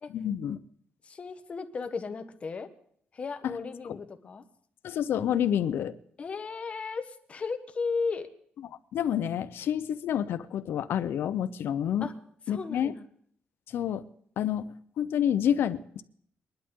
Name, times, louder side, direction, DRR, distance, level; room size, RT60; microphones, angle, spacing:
voice 1, 0.1-0.6 3.4-3.6 3.9-4.0 4.8-6.0 8.9-12.1 12.5-12.9 13.7-14.0 14.4-16.0, left 9 dB, 75° left, 13 dB, 0.7 m, -28 dB
voice 2, 1.0-2.7 3.1-4.4 6.2-8.3 12.0-12.1 12.5-13.0, left 4 dB, 35° left, 9 dB, 1.0 m, -35 dB
21.0 x 11.5 x 3.7 m, 0.64 s
wide cardioid pair, 160°, 4 cm